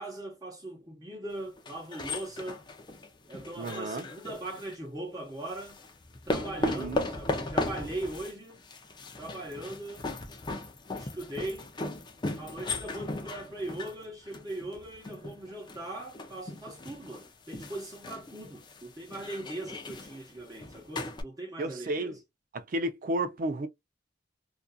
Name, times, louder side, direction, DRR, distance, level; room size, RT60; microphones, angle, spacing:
voice 1, 0.0-2.6 3.3-5.8 6.3-8.6 9.2-10.1 11.0-11.7 12.4-22.2, right 1 dB, 20° right, 0.9 m, -40 dB
sound 1, 1.6-4.8 5.5-21.2, left 2 dB, 25° left, 0.4 m, -37 dB
voice 2, 3.6-4.1 6.6-7.1 21.6-22.2 22.5-23.7, right 1 dB, 50° right, 0.4 m, -32 dB
2.5 x 2.5 x 2.2 m
head